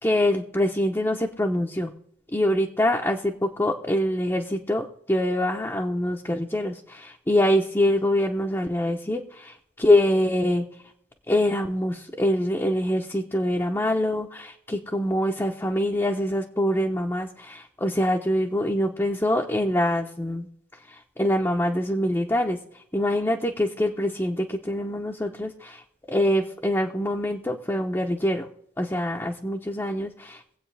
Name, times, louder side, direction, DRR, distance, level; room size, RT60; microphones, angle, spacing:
voice 1, 0.0-1.9 2.3-10.6 11.3-20.5 20.9-22.6 22.9-25.8 26.1-28.5 28.8-30.6, left 1 dB, 15° left, 0 dB, 0.7 m, -24 dB
22.0 x 8.2 x 3.3 m, 0.71 s
head